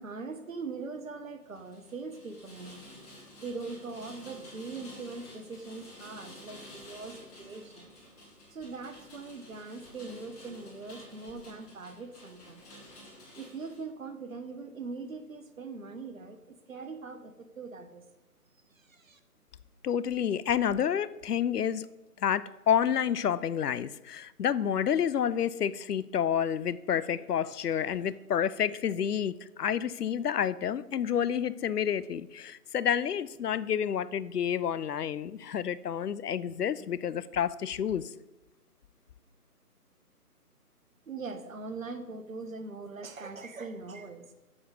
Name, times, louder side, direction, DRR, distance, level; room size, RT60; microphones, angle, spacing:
voice 1, 0.0-2.8 3.1-7.9 8.5-12.6 13.3-18.0 18.7-19.2 41.1-44.3, right 4 dB, 60° right, 1.0 m, -41 dB
Rain, 1.5-13.8, left 1 dB, 25° left, 2.2 m, -51 dB
voice 2, 19.8-21.9 22.2-38.1, left 8 dB, 75° left, 0.5 m, -29 dB
7.0 x 6.5 x 5.1 m
figure-of-eight pair, 150°, 46 cm